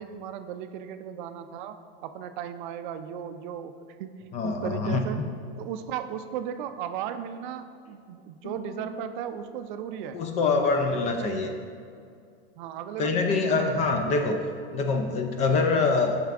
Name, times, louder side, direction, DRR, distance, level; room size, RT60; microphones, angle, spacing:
voice 1, 0.0-5.2 5.6-10.2 10.9-11.6 12.6-14.4, right 9 dB, 50° right, 9 dB, 0.4 m, -36 dB
voice 2, 4.3-5.0 10.1-11.5 13.0-14.4 14.7-16.2, left 4 dB, 25° left, 4 dB, 0.3 m, -24 dB
Bass guitar, 8.4-10.8, left 4 dB, 50° left, 0.9 m, -46 dB
9.0 x 5.7 x 2.4 m, 2.3 s
supercardioid pair, 135°, 31 cm